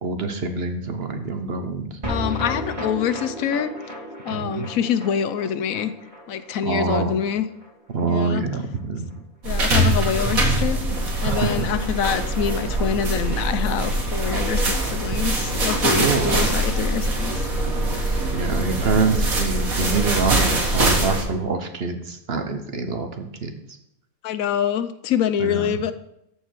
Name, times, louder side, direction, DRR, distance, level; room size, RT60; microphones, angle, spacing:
voice 1, 0.0-2.0 4.3-4.7 6.6-7.1 7.9-9.1 11.2-11.7 15.9-16.4 18.3-23.5 25.4-25.7, right 4 dB, 50° right, 7 dB, 1.0 m, -25 dB
sound 1, 2.0-8.5 8.7-8.8 9.1-9.2, left 1 dB, 25° right, 2.1 m, -34 dB
voice 2, 2.1-3.7 4.2-5.9 6.3-7.4 8.1-8.4 9.4-10.8 11.2-17.4 24.2-25.9, left 8 dB, 75° left, 11 dB, 1.0 m, -25 dB
sound 2, 9.4-21.2, right 1 dB, 75° right, 2.3 m, -23 dB
14.0 x 4.7 x 4.5 m, 0.81 s
omnidirectional pair, 1.5 m